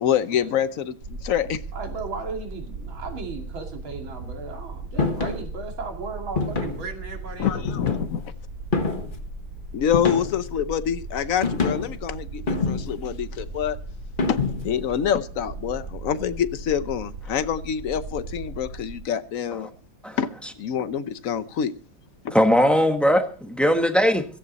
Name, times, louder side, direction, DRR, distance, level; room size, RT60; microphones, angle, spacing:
voice 1, 0.0-1.6 7.4-8.2 9.7-13.8 14.3-14.4 14.6-19.7 20.2-20.3 20.6-21.7 22.2-22.3, left 9 dB, 55° left, 1.0 m, -26 dB
sound 1, 1.0-19.0, right 2 dB, 65° right, 4.2 m, -37 dB
voice 2, 1.7-7.6, right 4 dB, 85° right, 3.2 m, -35 dB
sound 2, 5.0-5.4 6.4-6.9 7.7-8.2 8.7-9.2 9.9-10.5 11.4-12.0 12.5-13.1 14.2-14.8, left 4 dB, 30° left, 1.3 m, -26 dB
voice 3, 22.3-24.3, equal, ahead, 1.0 m, -19 dB
16.0 x 14.0 x 4.1 m
omnidirectional pair, 2.1 m